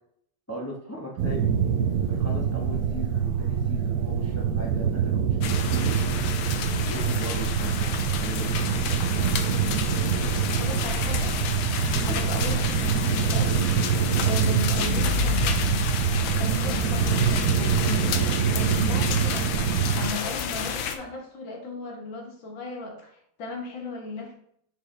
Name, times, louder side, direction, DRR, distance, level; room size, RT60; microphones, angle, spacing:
voice 1, 0.5-1.5 2.1-6.0 6.9-8.6 11.9-12.3, right 1 dB, 25° left, -2 dB, 0.3 m, -38 dB
sound 1, 1.2-20.1, right 7 dB, 75° right, 0.8 m, -25 dB
sound 2, 5.4-20.9, left 8 dB, 90° left, 1.5 m, -30 dB
voice 2, 10.6-11.4 12.1-13.6 14.2-15.8 16.1-19.4 20.0-24.3, left 3 dB, 70° left, 0 dB, 2.0 m, -36 dB
7.0 x 4.6 x 3.3 m, 0.68 s
omnidirectional pair, 2.2 m